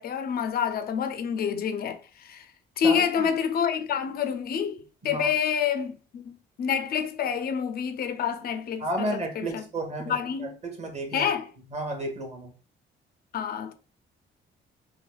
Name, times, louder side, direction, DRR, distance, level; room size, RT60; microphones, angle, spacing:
voice 1, 0.0-2.5 2.8-9.6 10.1-10.6 11.1-11.5 13.3-13.7, left 7 dB, 50° left, 0.4 m, -28 dB
voice 2, 8.8-11.3 11.7-12.5, right 1 dB, 35° right, 0.9 m, -32 dB
3.4 x 2.1 x 2.3 m
cardioid pair, 90°, 20 cm